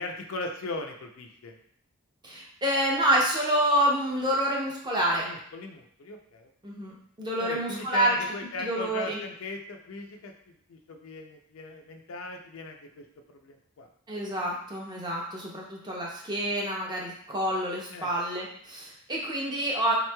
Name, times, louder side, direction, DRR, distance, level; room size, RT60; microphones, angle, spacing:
voice 1, 0.0-1.6 5.2-6.5 7.4-13.9 17.9-18.1, left 3 dB, 75° left, 3 dB, 0.5 m, -39 dB
voice 2, 2.2-5.3 6.6-8.2 8.6-9.2 14.1-19.9, right 1 dB, 20° right, -3 dB, 0.6 m, -28 dB
3.5 x 3.0 x 2.2 m, 0.67 s
head